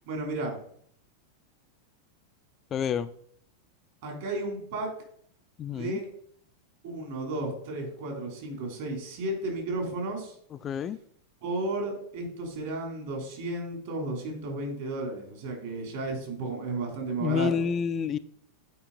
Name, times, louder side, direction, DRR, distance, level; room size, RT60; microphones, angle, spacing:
voice 1, 0.1-0.6 4.0-4.9 5.6-6.1 6.8-10.3 11.4-17.7, right 2 dB, 55° right, 1 dB, 3.3 m, -33 dB
voice 2, 2.7-3.1 5.6-6.0 10.6-11.0 17.2-18.2, left 7 dB, 25° left, 12 dB, 0.3 m, -28 dB
8.4 x 4.9 x 4.0 m, 0.64 s
figure-of-eight pair, 90°, 0 cm